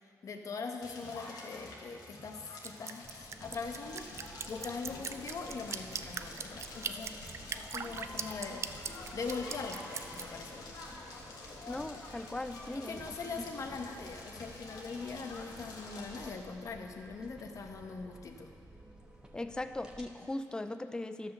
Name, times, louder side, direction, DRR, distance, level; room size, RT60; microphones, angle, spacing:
voice 1, 0.2-4.1 4.5-7.2 7.6-8.7 9.1-10.7 12.7-18.5, left 4 dB, 55° left, 4 dB, 1.0 m, -41 dB
Crackle, 0.8-16.3, left 2 dB, 85° left, 1.6 m, -48 dB
Drip, 2.6-10.2, right 6 dB, 45° right, 0.4 m, -39 dB
sound 1, 3.0-20.1, right 1 dB, 15° right, 1.2 m, -54 dB
voice 2, 11.7-13.4 19.3-21.3, left 2 dB, 10° left, 9 dB, 0.4 m, -39 dB
12.5 x 5.7 x 6.7 m, 2.3 s
cardioid pair, 100°, 7 cm